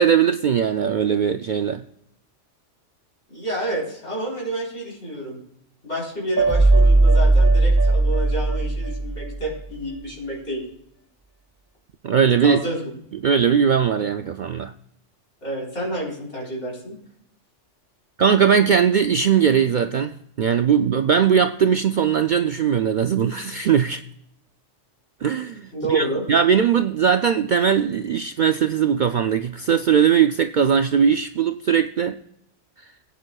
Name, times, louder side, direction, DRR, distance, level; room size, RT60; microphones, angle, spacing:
voice 1, 0.0-1.8 12.0-12.6 13.2-14.7 18.2-24.0 25.2-32.2, right 7 dB, 60° right, 8 dB, 0.5 m, -19 dB
voice 2, 3.3-5.4 5.8-10.6 12.4-12.9 15.4-17.0 25.7-26.2, right 1 dB, 65° left, -3 dB, 4.3 m, -29 dB
sound 1, 6.4-9.5, right 2 dB, 20° right, 1.8 m, -17 dB
20.0 x 9.2 x 2.3 m, 0.74 s
omnidirectional pair, 1.2 m